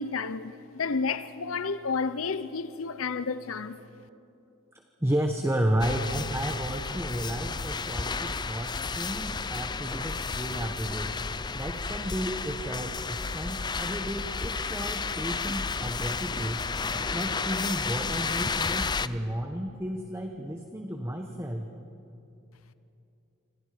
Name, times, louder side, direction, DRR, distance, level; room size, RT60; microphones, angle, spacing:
voice 1, 0.0-3.8, left 4 dB, 80° left, 0.7 m, -31 dB
voice 2, 5.0-11.2 11.5-16.6 17.1-21.7, right 1 dB, 10° right, 1.2 m, -32 dB
sound 1, 5.8-19.1, left 4 dB, 20° left, 0.5 m, -32 dB
28.0 x 26.0 x 5.1 m
head